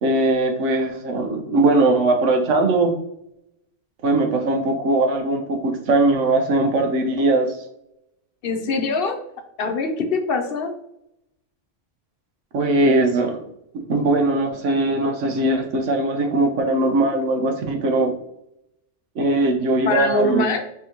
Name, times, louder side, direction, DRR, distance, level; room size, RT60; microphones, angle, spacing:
voice 1, 0.0-2.9 4.0-7.6 12.5-13.4 13.7-18.2 19.1-20.4, right 2 dB, 80° right, 4 dB, 1.2 m, -20 dB
voice 2, 8.4-9.2 9.6-10.7 19.8-20.6, left 2 dB, 55° left, 5 dB, 0.8 m, -22 dB
4.8 x 3.8 x 2.9 m, 0.79 s
omnidirectional pair, 1.2 m